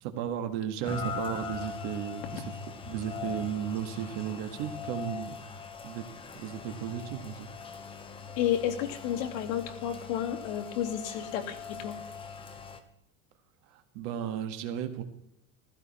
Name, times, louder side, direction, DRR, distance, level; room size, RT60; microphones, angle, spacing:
voice 1, 0.0-5.3 5.8-6.0 6.3-7.5 13.7-15.0, right 9 dB, 55° right, 7 dB, 1.9 m, -35 dB
Rain, 0.8-12.8, left 6 dB, 15° left, 0.8 m, -41 dB
voice 2, 8.4-12.0, left 10 dB, 75° left, 3 dB, 2.5 m, -31 dB
15.5 x 14.5 x 4.3 m, 0.80 s
cardioid pair, 170°, 40 cm